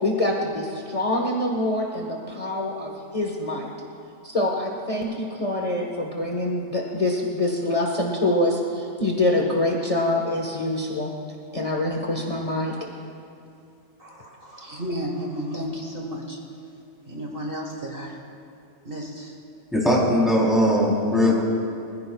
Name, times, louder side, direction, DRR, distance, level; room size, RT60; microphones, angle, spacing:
voice 1, 0.0-3.7 4.2-11.1 11.5-12.7, left 1 dB, 30° left, -2 dB, 1.3 m, -25 dB
voice 2, 14.0-16.4 17.1-18.2 18.8-19.4, equal, 45° right, -1 dB, 1.7 m, -33 dB
voice 3, 19.7-21.4, left 1 dB, ahead, -5 dB, 3.5 m, -19 dB
25.0 x 15.5 x 2.4 m, 2.5 s
omnidirectional pair, 1.3 m